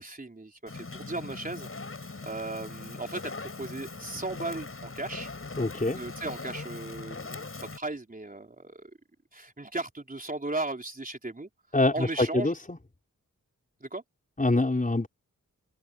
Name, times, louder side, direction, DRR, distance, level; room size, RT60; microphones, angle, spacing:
voice 1, 0.0-1.7 2.2-5.3 5.9-7.5 7.7-8.9 9.3-11.5 11.9-12.5 13.8-14.0, right 2 dB, 25° right, 4.1 m, -36 dB
Fire, 0.7-7.8, left 3 dB, 45° left, 7.1 m, -40 dB
voice 2, 5.6-6.0 11.7-12.8 14.4-15.1, left 2 dB, 25° left, 5.2 m, -25 dB
wide cardioid pair, 85°, 32 cm